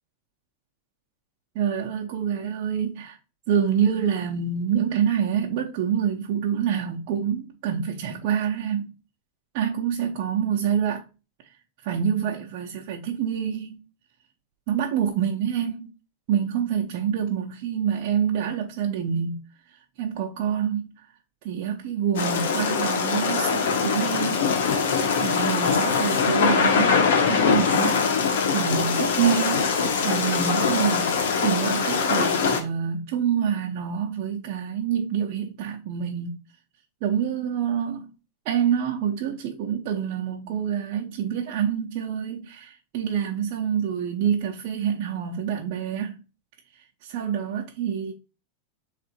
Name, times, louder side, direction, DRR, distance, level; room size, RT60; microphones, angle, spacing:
voice 1, 1.5-3.2 3.5-8.9 9.5-11.0 11.8-13.8 14.7-15.9 16.3-19.4 20.0-20.9 21.4-24.5 25.2-28.2 28.5-36.3 37.0-38.1 38.4-46.2 47.0-48.1, right 8 dB, 45° right, 0.7 m, -26 dB
sound 1, 22.1-32.6, left 5 dB, 80° left, 1.0 m, -22 dB
3.7 x 3.3 x 4.4 m
supercardioid pair, 155°, 0 cm